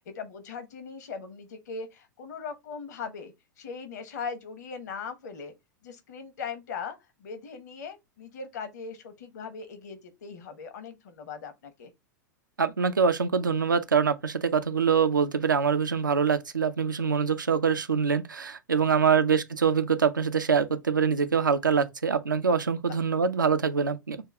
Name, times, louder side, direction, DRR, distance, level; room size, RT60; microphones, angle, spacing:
voice 1, 0.0-5.5 5.8-11.9 18.8-19.2 22.9-23.0, left 5 dB, 60° left, 1.1 m, -40 dB
voice 2, 12.6-24.2, right 6 dB, 80° right, 0.6 m, -24 dB
6.7 x 2.3 x 3.4 m
figure-of-eight pair, 95°, 10 cm